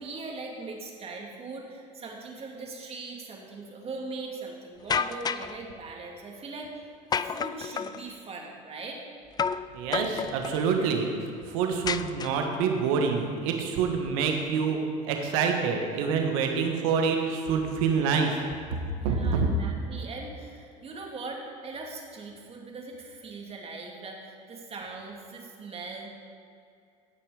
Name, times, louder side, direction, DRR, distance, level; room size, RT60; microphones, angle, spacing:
voice 1, 0.0-6.8 7.2-9.0 19.0-26.1, right 3 dB, 35° right, 0 dB, 2.4 m, -40 dB
sound 1, 4.9-5.6 7.1-8.0 9.4-9.7 9.9-10.6 11.9-12.6, left 6 dB, 25° left, 0.4 m, -30 dB
voice 2, 9.7-11.1 11.5-18.3 19.0-19.5, right 6 dB, 80° right, 3 dB, 1.5 m, -26 dB
16.5 x 5.9 x 4.9 m, 2.5 s
supercardioid pair, 85°, 17 cm